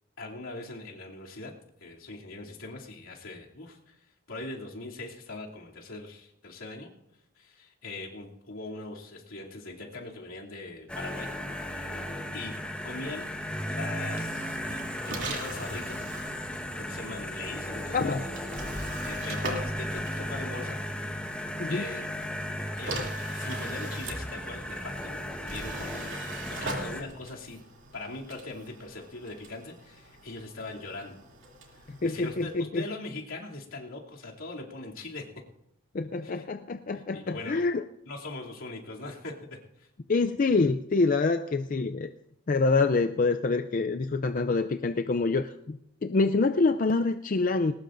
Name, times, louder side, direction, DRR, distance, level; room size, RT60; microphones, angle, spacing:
voice 1, 0.2-1.5 1.8-4.0 4.3-6.9 7.4-11.9 12.3-12.5 12.8-13.3 13.7-16.1 16.7-18.3 19.0-20.8 21.7-22.1 22.8-25.2 25.4-26.1 26.5-27.6 27.9-31.2 31.7-35.3 36.2-36.4 37.1-37.6 38.1-39.9, left 2 dB, 75° left, -2 dB, 2.8 m, -41 dB
sound 1, 10.9-27.0, equal, 5° left, 1.3 m, -35 dB
sound 2, 14.1-21.0 22.0-32.6, right 2 dB, 60° right, 2.7 m, -42 dB
voice 2, 17.9-18.2 21.6-21.8 31.9-32.8 35.9-37.8 40.1-42.1 42.5-47.7, left 3 dB, 40° left, 8 dB, 0.4 m, -26 dB
21.0 x 18.5 x 2.6 m, 0.78 s
head